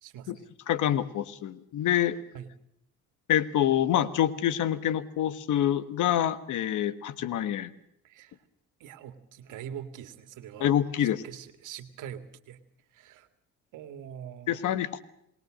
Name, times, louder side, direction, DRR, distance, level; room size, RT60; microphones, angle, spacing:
voice 1, 0.0-0.5 2.3-2.5 8.0-8.4 8.8-10.7 11.0-12.6 12.9-13.3 13.7-14.6, right 9 dB, 90° right, 10 dB, 2.1 m, -43 dB
voice 2, 0.7-2.2 3.3-7.7 10.6-11.2 14.5-15.0, left 11 dB, 80° left, 14 dB, 1.5 m, -26 dB
28.0 x 20.0 x 6.3 m, 0.73 s
cardioid pair, 90°, 30 cm